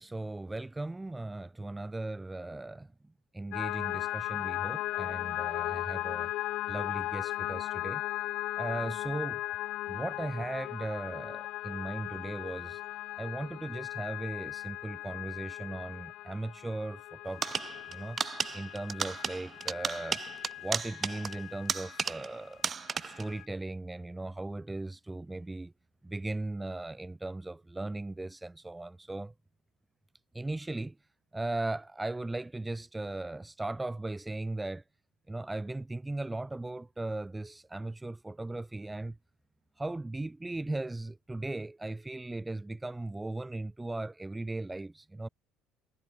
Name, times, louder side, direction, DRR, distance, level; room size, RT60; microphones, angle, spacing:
voice 1, 0.0-2.9 3.4-6.3 6.7-8.0 8.6-9.4 9.9-12.8 13.2-17.5 17.9-18.2 18.5-20.2 20.6-22.6 23.0-25.7 26.0-29.3 30.3-30.9 31.3-34.8 35.3-39.2 39.8-45.3, right 2 dB, 15° right, 2.0 m, -37 dB
sound 1, 3.5-22.2 22.7-23.5, left 16 dB, 65° left, 1.2 m, -37 dB
sound 2, 17.4-22.4 22.6-23.3, right 6 dB, 35° right, 0.5 m, -35 dB
supercardioid pair, 80°, 0 cm